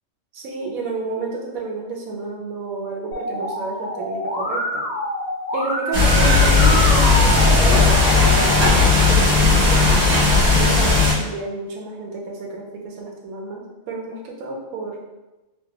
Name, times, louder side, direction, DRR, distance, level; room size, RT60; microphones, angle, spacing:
voice 1, 0.3-4.8 5.5-8.5 9.0-9.9 10.5-15.0, right 3 dB, 85° right, 0 dB, 1.1 m, -30 dB
Musical instrument, 3.1-8.7, equal, 20° left, 1.1 m, -26 dB
sound 1, 5.9-11.1, left 3 dB, 60° right, 1.5 m, -15 dB
3.2 x 2.3 x 2.7 m, 1.0 s
omnidirectional pair, 1.4 m